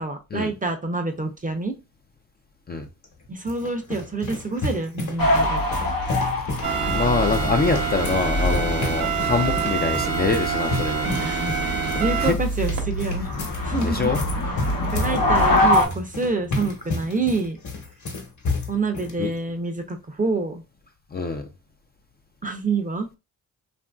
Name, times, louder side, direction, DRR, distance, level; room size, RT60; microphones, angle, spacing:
voice 1, 0.0-1.8 3.3-5.6 11.0-13.3 13.6-14.1 14.4-14.5 14.8-17.6 18.7-20.6 22.4-23.1, right 3 dB, 25° right, 0.6 m, -27 dB
sound 1, 3.0-19.1, left 3 dB, 55° left, 1.1 m, -32 dB
sound 2, 5.2-15.9, left 1 dB, 75° left, 0.8 m, -25 dB
sound 3, 6.6-12.8, right 6 dB, 80° right, 0.9 m, -26 dB
voice 2, 6.9-11.1 12.2-12.4 13.8-14.2 19.2-19.3 21.1-21.5, left 4 dB, 30° left, 0.4 m, -24 dB
2.8 x 2.6 x 2.3 m
cardioid pair, 65°, 34 cm